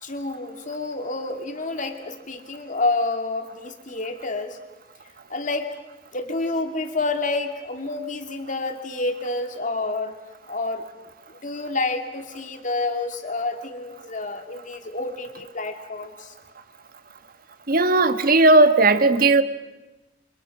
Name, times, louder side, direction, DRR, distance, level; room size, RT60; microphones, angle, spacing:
voice 1, 0.0-4.6 5.3-5.8 6.1-10.1 10.5-16.3, left 2 dB, 45° left, 5 dB, 2.7 m, -29 dB
voice 2, 17.7-19.4, right 2 dB, 55° right, 10 dB, 1.5 m, -16 dB
29.0 x 26.0 x 6.2 m, 1.0 s
head